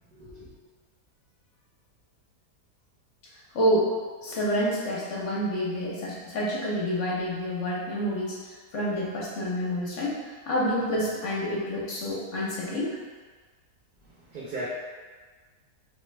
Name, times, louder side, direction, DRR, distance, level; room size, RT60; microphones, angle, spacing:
voice 1, 0.1-0.5 14.0-14.6, right 2 dB, 50° right, -12 dB, 0.6 m, -38 dB
voice 2, 3.5-3.9 4.2-13.0, equal, 55° left, -6 dB, 1.1 m, -28 dB
3.1 x 2.4 x 3.2 m, 1.4 s
omnidirectional pair, 1.6 m